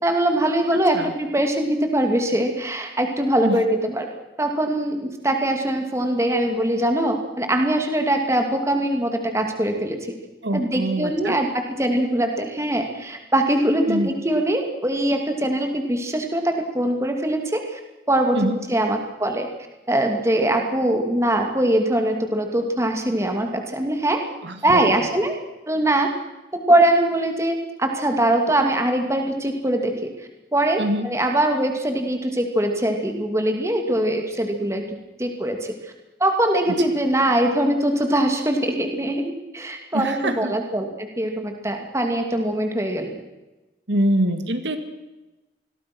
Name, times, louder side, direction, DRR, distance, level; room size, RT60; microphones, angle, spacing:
voice 1, 0.0-4.1 4.4-10.0 10.5-17.8 18.1-18.4 18.7-19.5 19.9-24.2 24.6-25.3 25.7-26.1 26.5-30.1 30.5-34.8 35.2-35.7 36.2-43.1, right 1 dB, 15° right, 4 dB, 2.7 m, -22 dB
voice 2, 10.4-11.4 13.9-14.1 18.3-18.6 24.4-25.1 30.8-31.1 39.9-40.5 43.9-44.8, right 1 dB, 80° right, 8 dB, 2.2 m, -24 dB
27.0 x 21.5 x 6.3 m, 1.1 s
head